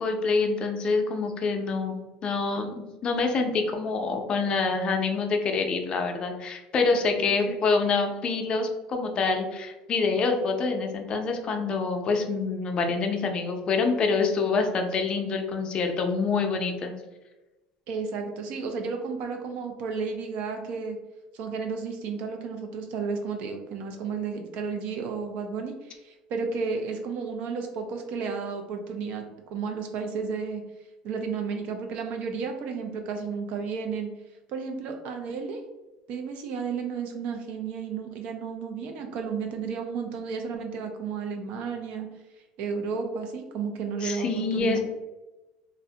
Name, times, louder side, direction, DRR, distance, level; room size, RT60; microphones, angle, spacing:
voice 1, 0.0-16.9 44.0-44.8, left 4 dB, 35° left, 4 dB, 0.4 m, -26 dB
voice 2, 7.2-7.5 17.9-21.0 21.3-30.6 31.0-34.1 34.5-35.6 36.1-42.1 42.6-44.8, right 5 dB, 60° right, 4 dB, 0.4 m, -32 dB
2.5 x 2.1 x 2.7 m, 1.1 s
supercardioid pair, 115°, 3 cm